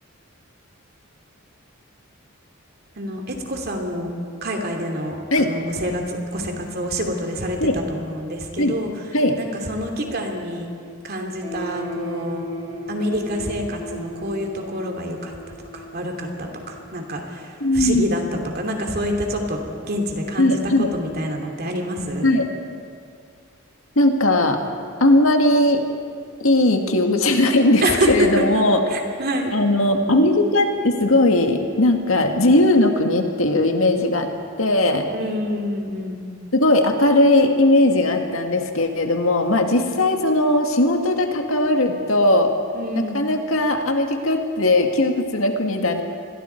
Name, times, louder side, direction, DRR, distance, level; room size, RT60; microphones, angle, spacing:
voice 1, 3.0-4.1 4.4-8.9 9.4-10.7 11.0-12.4 12.9-15.3 15.7-18.2 18.5-20.6 20.9-22.3 27.8-28.4 28.9-29.5 35.1-36.3 39.7-39.8 42.7-43.2, equal, 50° right, 2 dB, 2.8 m, -27 dB
sound 1, 11.4-17.2, equal, 30° right, 4.4 m, -35 dB
voice 2, 17.6-18.1 20.4-20.9 22.2-22.5 24.0-24.6 25.0-25.8 26.4-28.8 29.5-34.3 34.6-35.1 36.5-42.5 42.9-46.0, left 1 dB, 70° left, 4 dB, 2.0 m, -18 dB
27.5 x 21.5 x 4.6 m, 2.2 s
head